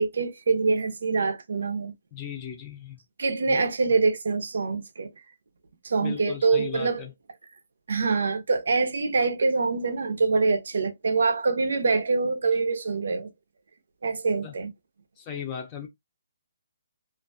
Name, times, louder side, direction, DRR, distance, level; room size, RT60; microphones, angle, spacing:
voice 1, 0.0-1.9 3.2-5.1 5.8-7.0 7.9-13.3 14.0-14.7, right 4 dB, 75° right, 0.5 m, -25 dB
voice 2, 2.1-3.0 3.4-3.6 3.9-4.0 6.0-7.1 14.4-14.6 15.2-15.9, left 8 dB, 20° left, 0.6 m, -37 dB
2.4 x 2.2 x 2.5 m
hypercardioid pair, 160°, 0 cm